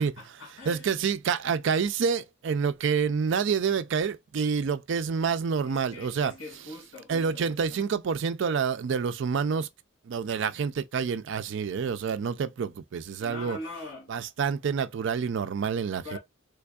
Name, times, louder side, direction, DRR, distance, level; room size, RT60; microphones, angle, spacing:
voice 1, 0.0-0.9 5.6-7.8 13.2-14.1 16.0-16.2, left 2 dB, 70° left, 1.9 m, -42 dB
voice 2, 0.7-6.3 7.1-9.7 10.1-13.6 14.1-16.2, right 6 dB, 60° right, 0.3 m, -28 dB
3.4 x 3.3 x 2.3 m
head